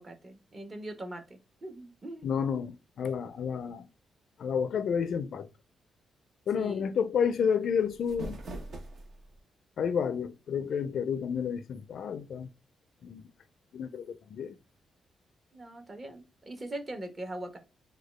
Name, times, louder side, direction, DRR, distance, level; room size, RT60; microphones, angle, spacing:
voice 1, 0.0-2.3 6.5-7.0 15.5-17.6, right 1 dB, 35° right, 0.9 m, -41 dB
voice 2, 2.2-3.9 4.4-5.5 6.5-8.4 9.8-12.5 13.0-13.3 13.7-14.5, left 7 dB, 70° left, 0.4 m, -30 dB
sound 1, 7.8-9.4, right 1 dB, 65° right, 0.9 m, -42 dB
3.6 x 2.3 x 3.0 m
cardioid pair, 85°, 0 cm